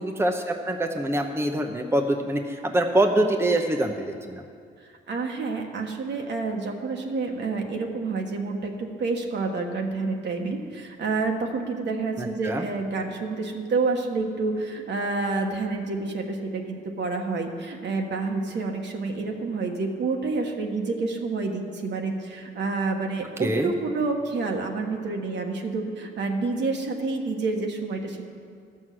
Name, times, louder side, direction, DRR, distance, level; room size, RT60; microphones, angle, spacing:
voice 1, 0.0-4.4 12.2-12.7 23.4-23.7, right 1 dB, 10° right, 3 dB, 0.8 m, -25 dB
voice 2, 4.8-28.3, right 3 dB, 60° right, 2 dB, 1.4 m, -28 dB
12.0 x 6.3 x 7.6 m, 2.2 s
cardioid pair, 90°, 20 cm